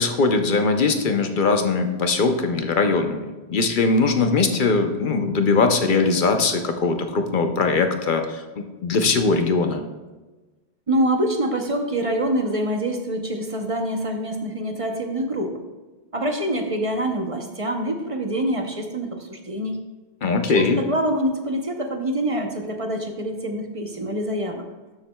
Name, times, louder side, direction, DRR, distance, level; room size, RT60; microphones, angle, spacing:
voice 1, 0.0-9.8 20.2-20.8, left 4 dB, 55° left, 6 dB, 0.8 m, -21 dB
voice 2, 10.9-15.6 16.1-19.8 20.5-24.7, right 1 dB, 35° right, 4 dB, 0.7 m, -25 dB
12.5 x 7.3 x 2.2 m, 1.2 s
omnidirectional pair, 1.1 m